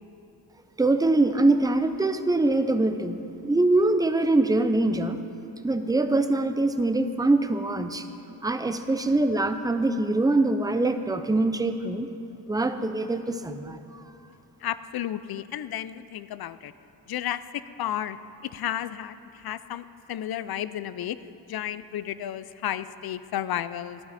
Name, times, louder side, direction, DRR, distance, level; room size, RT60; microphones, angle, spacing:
voice 1, 0.8-5.2 5.6-8.1 8.4-12.1 12.5-13.8, right 2 dB, 10° right, 8 dB, 0.6 m, -23 dB
voice 2, 14.6-16.7 17.1-18.2 18.5-21.2 21.5-24.0, left 11 dB, 65° left, 15 dB, 0.5 m, -32 dB
13.5 x 11.5 x 4.2 m, 2.7 s
cardioid pair, 95°, 41 cm